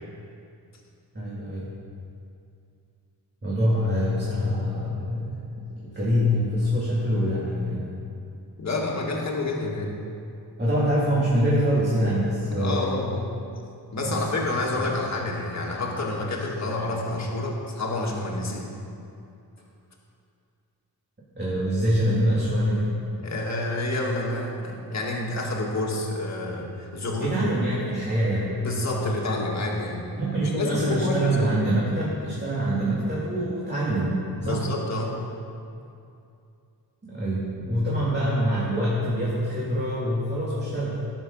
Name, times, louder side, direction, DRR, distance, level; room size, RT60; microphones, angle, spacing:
voice 1, 1.1-1.7 3.4-5.5 5.8-7.9 10.6-13.0 14.0-14.3 14.7-14.9 21.4-22.9 27.2-28.5 30.2-34.6 37.0-41.0, equal, 25° right, -8 dB, 2.2 m, -25 dB
voice 2, 8.6-10.0 12.5-13.3 13.9-18.7 23.2-27.5 28.6-30.0 30.4-31.7 34.4-35.2, left 2 dB, 45° left, -2 dB, 1.9 m, -28 dB
16.0 x 7.1 x 5.5 m, 2.6 s
wide cardioid pair, 145°, 38 cm